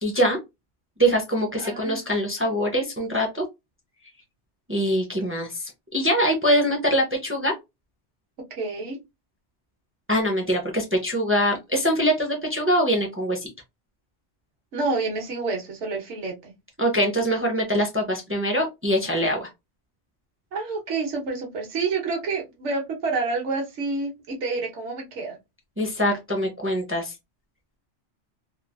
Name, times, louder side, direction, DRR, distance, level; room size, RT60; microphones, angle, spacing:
voice 1, 0.0-0.4 1.0-3.4 4.7-7.5 10.1-13.5 16.8-19.5 25.8-27.1, equal, 20° right, 2 dB, 0.4 m, -23 dB
voice 2, 1.6-2.1 8.5-9.0 14.7-16.5 20.5-25.4, right 3 dB, 75° right, 1 dB, 1.2 m, -28 dB
3.1 x 2.3 x 2.2 m, 0.22 s
omnidirectional pair, 1.2 m